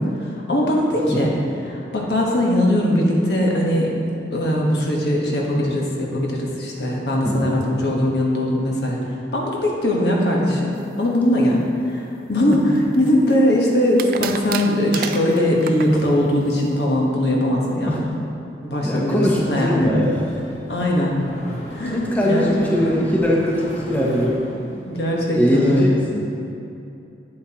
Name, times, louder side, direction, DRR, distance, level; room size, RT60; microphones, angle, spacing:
voice 1, 0.0-1.3 1.7-3.9 4.3-18.0 18.6-19.2 19.5-19.9 20.7-21.2 21.7-22.5 22.8-23.1 24.5-25.8, left 1 dB, 65° left, -2 dB, 1.3 m, -20 dB
voice 2, 7.2-7.6 12.5-12.6 17.9-18.0 18.8-20.3 21.9-24.4 25.3-26.2, equal, 10° left, -4 dB, 0.7 m, -21 dB
sound 1, 12.5-13.3 14.0-16.0, right 8 dB, 50° right, 0.3 m, -31 dB
Mechanisms, 20.0-25.2, equal, 40° left, 1.0 m, -37 dB
8.7 x 7.9 x 3.0 m, 2.7 s
head